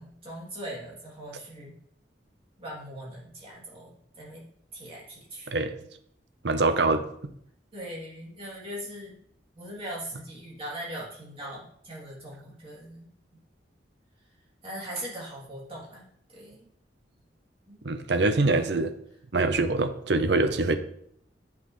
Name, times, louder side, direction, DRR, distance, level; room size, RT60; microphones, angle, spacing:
voice 1, 0.0-1.8 2.6-4.5 4.7-5.5 7.7-9.2 9.5-13.1 14.6-16.7 17.7-17.8 20.2-20.3, right 1 dB, 30° right, -5 dB, 2.6 m, -40 dB
voice 2, 6.4-7.0 17.8-18.9 19.3-20.7, right 3 dB, 65° right, 9 dB, 0.7 m, -24 dB
8.4 x 5.8 x 3.1 m, 0.69 s
head